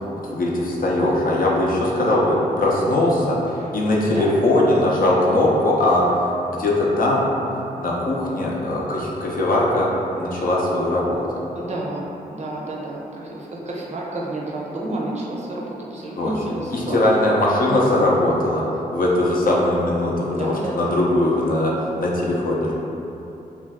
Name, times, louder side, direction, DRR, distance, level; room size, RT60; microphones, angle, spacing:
voice 1, 0.2-7.3 7.8-9.9 10.2-11.2 16.2-16.3 16.7-18.6 18.9-22.7, left 1 dB, 60° left, -4 dB, 0.6 m, -20 dB
voice 2, 11.5-17.3 20.2-21.0, right 2 dB, 45° right, -4 dB, 0.6 m, -30 dB
2.5 x 2.2 x 3.4 m, 2.9 s
cardioid pair, 60°, 17 cm